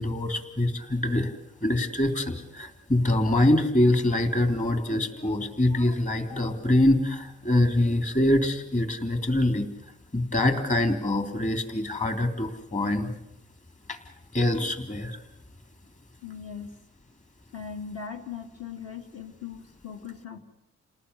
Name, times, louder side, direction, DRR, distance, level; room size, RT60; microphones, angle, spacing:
voice 1, 0.0-1.3 1.6-9.7 10.1-13.1 13.9-14.0 14.3-15.2, left 1 dB, 25° left, 6 dB, 3.4 m, -24 dB
voice 2, 16.2-16.7 17.5-20.4, left 7 dB, 55° left, 3 dB, 2.9 m, -39 dB
29.5 x 19.0 x 9.8 m, 0.81 s
cardioid pair, 130°, 30 cm